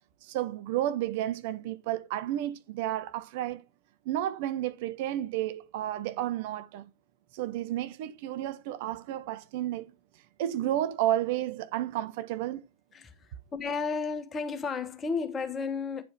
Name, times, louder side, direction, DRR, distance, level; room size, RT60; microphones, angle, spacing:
voice 1, 0.2-3.6 4.0-6.9 7.3-9.9 10.4-12.6, right 13 dB, 50° right, 0.8 m, -31 dB
voice 2, 13.5-16.0, left 5 dB, 20° left, 1.3 m, -32 dB
9.8 x 4.7 x 4.5 m
figure-of-eight pair, 90°, 0 cm